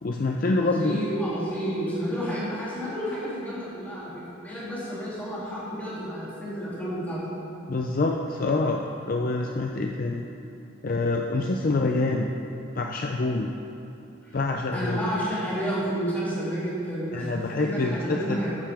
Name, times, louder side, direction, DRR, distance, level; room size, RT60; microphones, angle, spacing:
voice 1, 0.0-1.0 7.7-8.8 9.1-10.3 10.8-12.3 12.8-13.5 14.3-15.0 17.1-18.4, left 2 dB, 40° left, 2 dB, 0.5 m, -26 dB
voice 2, 0.6-7.2 14.2-14.4 14.7-18.6, equal, 10° left, -9 dB, 2.8 m, -31 dB
13.5 x 9.7 x 3.5 m, 2.8 s
head